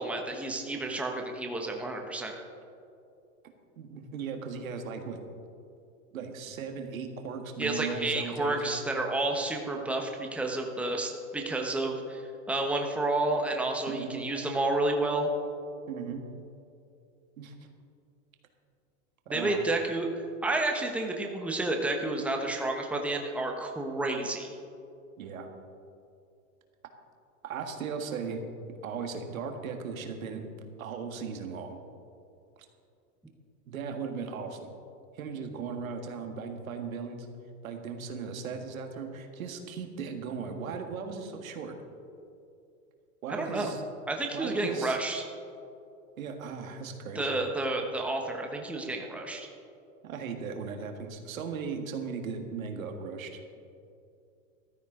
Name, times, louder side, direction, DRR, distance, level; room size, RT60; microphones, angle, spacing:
voice 1, 0.0-2.3 7.6-15.3 19.3-24.5 43.3-43.7 44.1-45.2 47.1-49.5, right 2 dB, 5° right, 2 dB, 1.1 m, -30 dB
voice 2, 3.8-5.2 6.1-8.7 13.9-14.2 15.9-16.2 17.4-17.5 19.3-19.6 25.2-25.5 27.4-28.4 28.8-30.4 30.8-31.8 33.7-34.7 35.1-37.3 37.6-41.7 43.2-43.8 44.3-45.0 46.2-47.4 50.0-53.4, right 5 dB, 85° right, 4 dB, 1.8 m, -37 dB
14.5 x 13.0 x 3.8 m, 2.6 s
hypercardioid pair, 125°, 40 cm